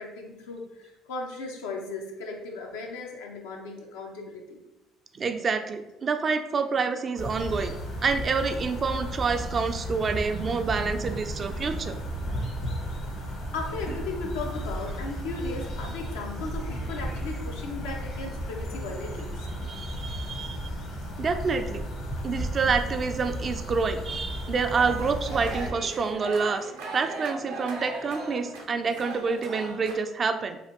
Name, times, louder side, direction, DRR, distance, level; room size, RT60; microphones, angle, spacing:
voice 1, 0.0-4.6 13.3-19.5, left 3 dB, 80° left, 1 dB, 0.6 m, -36 dB
voice 2, 5.1-7.7 8.0-12.0 19.7-20.7 21.2-21.8 22.2-30.6, right 5 dB, 40° right, 8 dB, 0.3 m, -28 dB
sound 1, 7.2-25.7, equal, 60° left, 1.0 m, -34 dB
sound 2, 24.7-29.9, right 2 dB, 80° right, 0.6 m, -38 dB
3.3 x 2.4 x 2.9 m, 0.93 s
hypercardioid pair, 65°, 0 cm